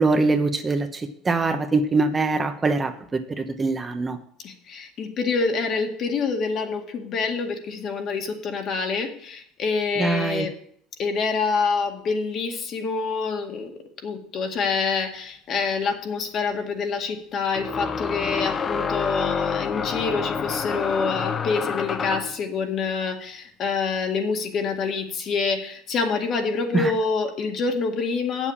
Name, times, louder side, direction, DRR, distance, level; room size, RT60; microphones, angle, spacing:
voice 1, 0.0-4.2 10.0-10.5 26.7-26.9, right 3 dB, 20° right, 7 dB, 1.0 m, -23 dB
voice 2, 4.4-10.5 11.0-28.5, left 4 dB, 50° left, 3 dB, 2.0 m, -26 dB
sound 1, 15.6-15.7 17.5-22.4, left 5 dB, 30° left, 0.7 m, -28 dB
8.2 x 7.3 x 7.2 m, 0.64 s
supercardioid pair, 105°, 0 cm